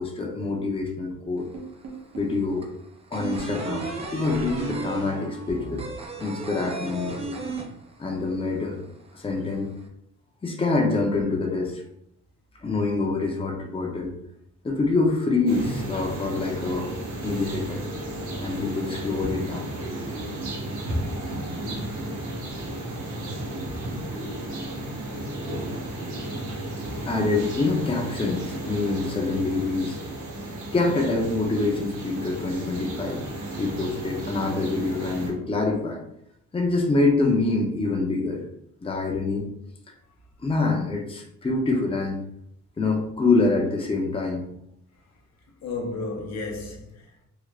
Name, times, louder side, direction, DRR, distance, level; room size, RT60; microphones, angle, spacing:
voice 1, 0.0-1.5 2.1-2.7 3.1-5.8 6.2-7.4 8.0-8.8 9.1-9.7 10.4-11.8 12.6-14.2 14.6-16.9 17.2-17.8 18.4-19.6 27.0-30.0 30.7-33.2 33.6-36.0 36.5-38.4 38.8-39.5 40.4-42.2 42.8-44.5, left 3 dB, 20° left, 0.7 m, -25 dB
sound 1, 1.4-1.5 1.7-8.3 8.6-8.7 9.0-9.8, right 3 dB, 20° right, 0.5 m, -35 dB
sound 2, 1.5-2.4 3.4-6.7, right 2 dB, 55° right, 0.9 m, -37 dB
sound 3, 15.5-35.3, right 1 dB, 80° right, 1.2 m, -33 dB
voice 2, 45.6-47.2, left 3 dB, 60° left, 0.8 m, -34 dB
3.7 x 2.1 x 3.3 m
cardioid pair, 90°, 30 cm